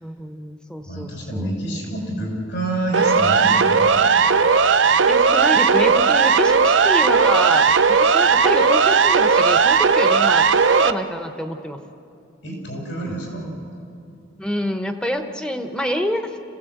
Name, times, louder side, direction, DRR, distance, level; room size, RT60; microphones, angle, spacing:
voice 1, 0.0-1.5 5.1-11.8 13.4-13.7 14.4-16.4, equal, 5° left, 6 dB, 0.9 m, -27 dB
voice 2, 0.9-4.0 12.4-13.4, right 1 dB, 60° left, 0 dB, 6.2 m, -28 dB
Siren, 2.9-10.9, right 5 dB, 70° right, 0.7 m, -16 dB
27.5 x 16.5 x 7.9 m, 2.6 s
head